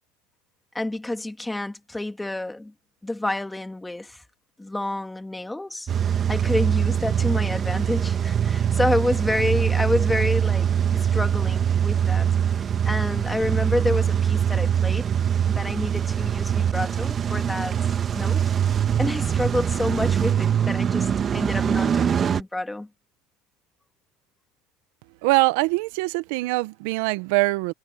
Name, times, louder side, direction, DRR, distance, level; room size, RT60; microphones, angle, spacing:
voice 1, 0.7-2.7 3.0-4.2 4.6-5.9 6.3-12.3 12.8-15.1 15.4-17.8 18.1-18.4 19.0-22.9, left 2 dB, 5° left, 2.3 m, -28 dB
Car / Engine starting / Idling, 5.9-22.4, right 8 dB, 30° right, 1.7 m, -23 dB
voice 2, 25.2-27.7, right 23 dB, 70° right, 1.3 m, -23 dB
supercardioid pair, 105°, 0 cm